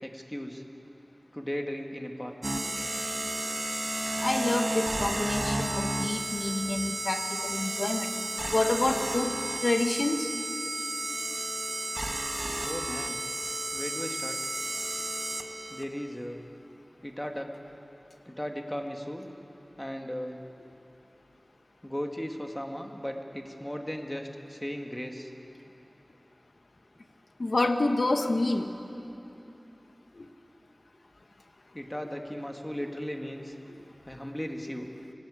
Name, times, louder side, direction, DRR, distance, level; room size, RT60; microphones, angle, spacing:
voice 1, 0.0-0.6 1.3-2.4 12.7-13.2 13.7-14.4 15.7-16.4 17.0-17.5 18.3-19.3 19.8-20.4 21.8-25.3 31.7-33.5 34.1-34.9, equal, 15° left, 3 dB, 2.3 m, -36 dB
sound 1, 2.4-15.8, right 1 dB, 45° right, 1.8 m, -32 dB
voice 2, 4.2-8.1 8.5-10.3 27.4-28.7 30.1-30.3, left 2 dB, 80° left, 6 dB, 1.4 m, -28 dB
26.0 x 18.0 x 8.6 m, 2.9 s
wide cardioid pair, 45°, 0 cm